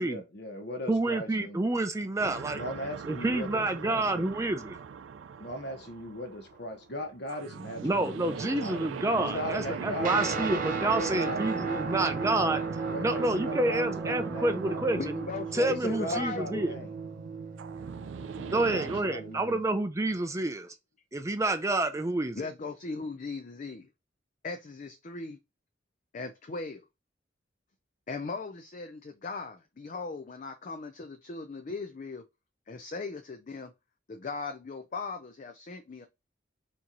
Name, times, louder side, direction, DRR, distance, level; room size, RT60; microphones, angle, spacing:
voice 1, 0.0-1.6 2.5-4.4 5.4-8.4 8.6-8.9 9.2-10.5 10.8-12.6 12.9-14.8 15.7-16.9 18.1-19.6, equal, 60° left, 1.1 m, -38 dB
voice 2, 0.9-2.6 3.1-4.8 7.8-12.6 13.0-15.0 15.5-16.7 18.5-20.7 21.1-22.4, right 2 dB, 15° right, 0.4 m, -28 dB
sound 1, 2.2-19.0, right 6 dB, 85° right, 0.4 m, -40 dB
Guitar, 10.0-19.6, right 4 dB, 45° right, 0.8 m, -35 dB
voice 3, 14.9-16.8 22.3-23.9 24.4-25.4 26.1-26.8 28.1-32.2 32.7-33.7 34.1-36.1, left 4 dB, 40° left, 0.5 m, -38 dB
4.3 x 2.9 x 3.8 m
head